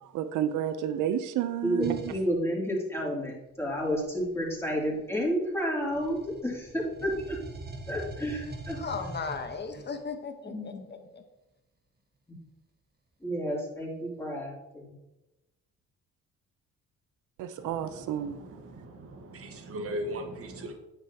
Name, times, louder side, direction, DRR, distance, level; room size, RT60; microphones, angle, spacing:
voice 1, 0.1-2.1 17.4-18.4, right 10 dB, 80° right, 11 dB, 0.6 m, -30 dB
voice 2, 1.6-7.4 7.9-8.8 10.4-10.8 13.2-14.8, equal, 10° left, -4 dB, 3.0 m, -31 dB
sound 1, 1.8-2.3 3.6-5.5 5.9-10.0, right 1 dB, 35° right, 1.3 m, -43 dB
voice 3, 8.7-11.2, left 5 dB, 35° left, 6 dB, 1.2 m, -37 dB
voice 4, 17.6-20.7, equal, 50° right, 4 dB, 1.5 m, -39 dB
9.0 x 7.2 x 2.9 m, 0.99 s
cardioid pair, 90°, 30 cm